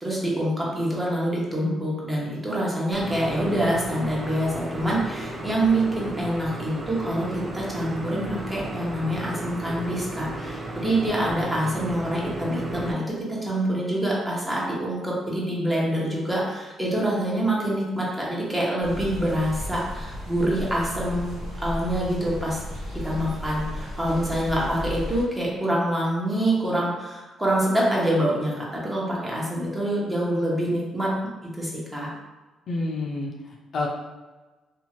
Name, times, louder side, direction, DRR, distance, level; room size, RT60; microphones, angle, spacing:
voice 1, 0.0-21.4 21.6-22.6 23.0-31.1 31.5-32.1, right 1 dB, 15° right, -5 dB, 0.9 m, -26 dB
sound 1, 2.9-12.9, right 1 dB, 30° right, 0.5 m, -34 dB
sound 2, 18.8-25.2, left 1 dB, 80° right, 1.2 m, -34 dB
voice 2, 32.7-33.9, left 2 dB, 60° left, -1 dB, 0.5 m, -29 dB
2.7 x 2.3 x 3.0 m, 1.2 s
cardioid pair, 90°, 0 cm